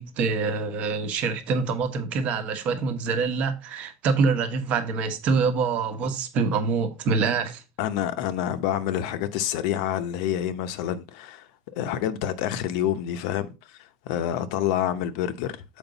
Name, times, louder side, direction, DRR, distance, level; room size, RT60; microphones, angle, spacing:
voice 1, 0.0-7.6, right 4 dB, 40° right, 1.1 m, -25 dB
voice 2, 7.8-15.8, left 10 dB, 60° left, 0.8 m, -28 dB
7.3 x 4.9 x 4.0 m
supercardioid pair, 165°, 4 cm